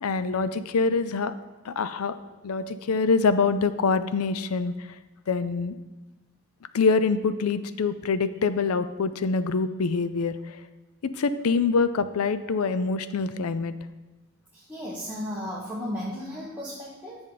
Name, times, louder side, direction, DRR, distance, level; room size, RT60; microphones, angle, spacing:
voice 1, 0.0-1.3 1.6-2.2 2.4-4.9 5.3-5.8 6.7-10.6 11.2-13.7, left 4 dB, 80° left, 13 dB, 0.5 m, -25 dB
voice 2, 14.5-17.2, equal, 5° right, -9 dB, 1.4 m, -34 dB
10.5 x 7.0 x 3.9 m, 1.1 s
head